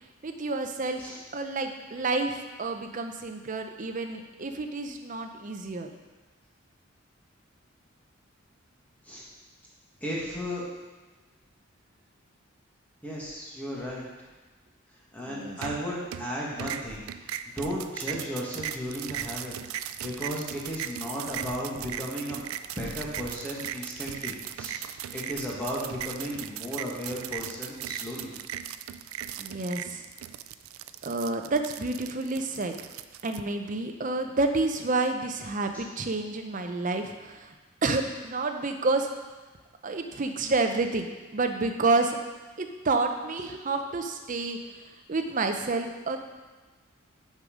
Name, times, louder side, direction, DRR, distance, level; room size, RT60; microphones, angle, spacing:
voice 1, 0.2-1.0 1.3-5.9 15.3-15.6 29.4-30.1 31.0-32.8 33.2-37.5 37.8-39.1 39.8-42.2 42.6-44.6 45.1-46.2, right 3 dB, 40° right, 5 dB, 0.6 m, -29 dB
voice 2, 10.0-10.6 13.0-14.0 15.1-19.5 20.0-22.4 22.8-24.8 25.1-28.3 35.7-35.8, equal, 5° left, -6 dB, 1.6 m, -35 dB
sound 1, 15.6-16.3 16.6-33.4, right 10 dB, 85° right, 0.3 m, -38 dB
6.3 x 5.5 x 5.0 m, 1.2 s
head